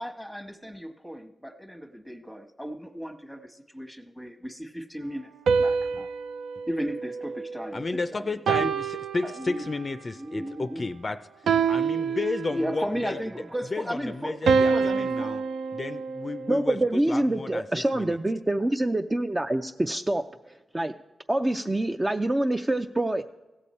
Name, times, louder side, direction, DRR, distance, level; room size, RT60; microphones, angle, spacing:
voice 1, 0.0-5.3 5.6-6.1 6.7-8.7 9.2-9.7 10.2-10.8 11.6-12.2 12.5-15.3, equal, 5° right, 6 dB, 1.1 m, -35 dB
sound 1, 5.5-7.9 8.5-9.9 11.5-12.9 14.5-16.8, right 5 dB, 90° right, 0.3 m, -27 dB
voice 2, 7.7-11.2 11.7-13.2 13.7-15.4 15.7-16.8 17.1-17.7 17.9-18.2, left 3 dB, 40° left, 9 dB, 0.4 m, -32 dB
voice 3, 16.5-20.9 21.3-23.3, right 1 dB, 20° right, 6 dB, 0.4 m, -26 dB
16.0 x 6.9 x 4.2 m, 1.1 s
cardioid pair, 70°, 0 cm